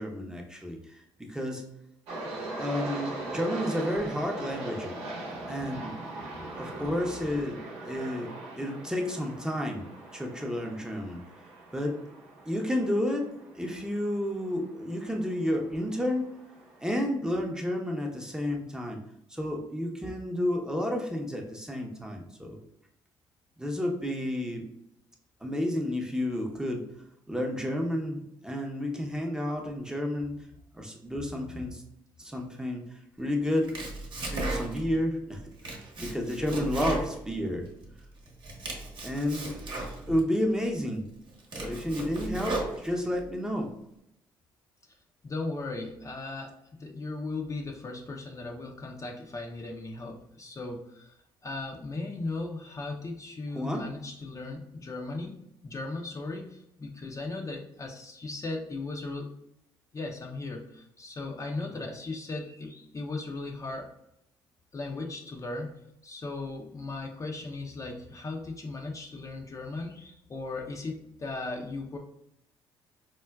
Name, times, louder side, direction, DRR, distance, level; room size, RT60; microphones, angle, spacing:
voice 1, 0.0-1.6 2.6-4.9 5.5-6.0 6.5-8.3 8.6-9.9 10.1-11.2 11.7-12.0 12.5-13.3 13.5-16.3 16.8-19.0 19.3-22.6 23.6-24.6 25.4-26.8 27.3-30.3 30.7-31.8 32.2-32.8 33.2-33.7 34.3-37.6 39.0-39.5 40.1-41.0 41.5-43.7 53.5-53.9, left 1 dB, 5° right, 1 dB, 0.7 m, -31 dB
sound 1, 2.1-17.0, right 2 dB, 75° right, 0.7 m, -41 dB
Domestic sounds home sounds, 33.5-35.0 35.4-37.9 38.3-40.2 40.8-40.9 41.3-43.2, right 2 dB, 50° right, 0.9 m, -36 dB
voice 2, 45.2-51.2 51.4-55.4 55.6-59.3 59.9-63.9 64.7-72.0, left 3 dB, 35° left, 1 dB, 0.5 m, -37 dB
4.6 x 2.1 x 2.3 m, 0.79 s
supercardioid pair, 60°, 10 cm